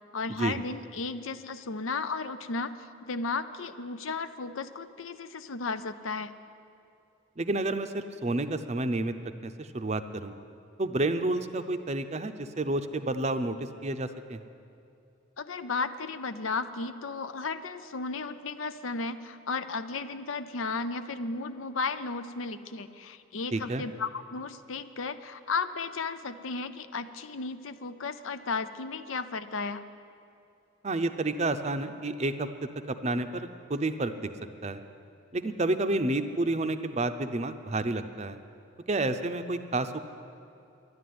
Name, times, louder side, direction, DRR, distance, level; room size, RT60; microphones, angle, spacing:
voice 1, 0.1-6.3 15.4-29.8, left 4 dB, 80° left, 11 dB, 0.6 m, -34 dB
voice 2, 7.4-9.1 9.4-10.3 10.8-14.4 23.5-23.8 30.8-32.5 32.9-34.1 34.6-34.8 35.3-38.4 38.9-40.0, right 2 dB, 35° right, 9 dB, 0.5 m, -30 dB
11.5 x 11.0 x 9.4 m, 2.6 s
head